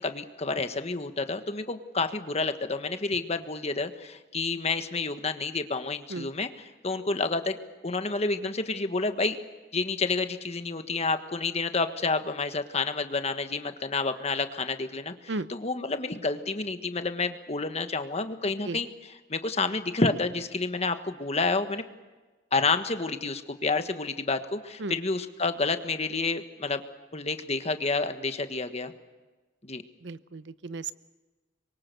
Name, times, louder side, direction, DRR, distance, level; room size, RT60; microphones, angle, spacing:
voice 1, 0.0-6.5 6.8-7.6 7.8-9.4 9.7-15.1 15.5-18.9 19.3-21.8 22.5-26.8 27.1-28.9 29.6-29.8, left 3 dB, 35° left, 8 dB, 1.4 m, -29 dB
voice 2, 30.0-30.9, right 3 dB, 75° right, 15 dB, 0.8 m, -35 dB
26.0 x 23.5 x 6.9 m, 1.2 s
head